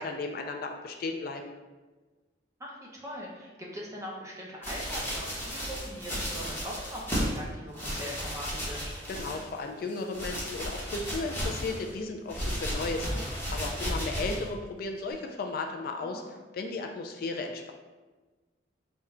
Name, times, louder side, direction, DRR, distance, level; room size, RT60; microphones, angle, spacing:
voice 1, 0.0-1.5 9.1-16.2 16.5-17.7, left 3 dB, 50° left, 3 dB, 0.3 m, -35 dB
voice 2, 2.6-8.9 16.0-16.3, equal, 15° right, -3 dB, 0.7 m, -41 dB
sound 1, 4.6-7.4 7.7-9.6 9.9-11.9 12.3-14.5 15.1-15.2, equal, 15° left, 1.0 m, -34 dB
3.6 x 2.3 x 4.2 m, 1.2 s
head